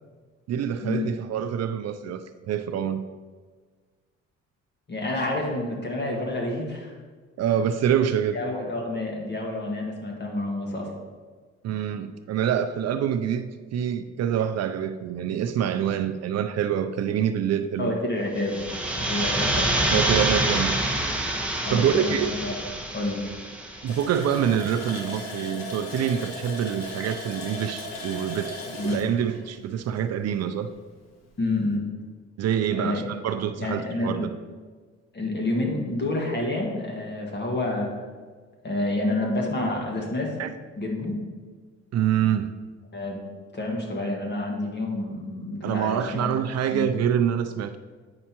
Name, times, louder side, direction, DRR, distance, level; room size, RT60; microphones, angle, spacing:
voice 1, 0.5-3.0 7.4-8.4 11.6-18.0 19.9-20.8 21.7-22.4 23.8-30.7 32.4-34.3 40.4-40.5 41.9-42.5 45.6-47.8, right 9 dB, 60° right, 10 dB, 0.4 m, -26 dB
voice 2, 4.9-6.9 8.3-10.9 17.8-18.7 18.9-19.8 21.6-22.6 22.9-23.2 28.8-29.0 31.4-31.8 32.7-33.1 33.6-34.3 35.1-37.9 38.6-40.3 40.8-41.2 42.9-43.2 43.5-46.3 46.7-46.9, left 2 dB, 35° left, 0 dB, 1.6 m, -28 dB
sound 1, 18.4-24.0, right 1 dB, 5° right, 1.1 m, -26 dB
Water tap faucet, 23.9-30.4 30.7-30.8 31.2-31.4, left 1 dB, 60° left, 1.4 m, -37 dB
8.6 x 5.4 x 2.9 m, 1.5 s
cardioid pair, 90°, 30 cm